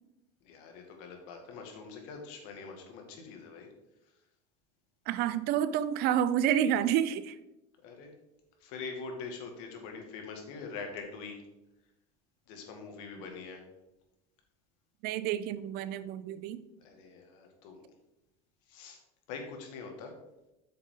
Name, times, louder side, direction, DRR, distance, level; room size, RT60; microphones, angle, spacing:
voice 1, 0.4-3.7 7.8-8.1 8.6-11.4 12.5-13.6 16.8-17.9 18.7-19.0 19.3-20.1, left 4 dB, 75° left, 3 dB, 2.2 m, -44 dB
voice 2, 5.1-7.4 15.0-16.6, right 10 dB, 60° right, 15 dB, 0.6 m, -29 dB
8.9 x 6.6 x 3.9 m, 0.95 s
supercardioid pair, 120°, 18 cm